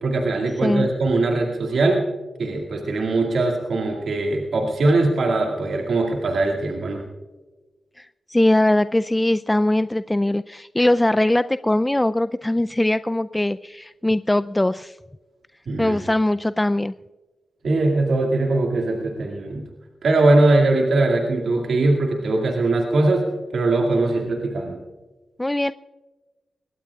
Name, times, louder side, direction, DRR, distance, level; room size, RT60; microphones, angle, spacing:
voice 1, 0.0-2.0 2.4-7.0 15.7-16.0 17.6-19.7 20.0-23.3 23.5-24.8, right 2 dB, 70° right, 0 dB, 2.1 m, -21 dB
voice 2, 8.0-15.0 15.8-16.9 25.4-25.7, left 1 dB, 15° left, 12 dB, 0.4 m, -21 dB
23.5 x 18.0 x 2.4 m, 1.2 s
cardioid pair, 50°, 0 cm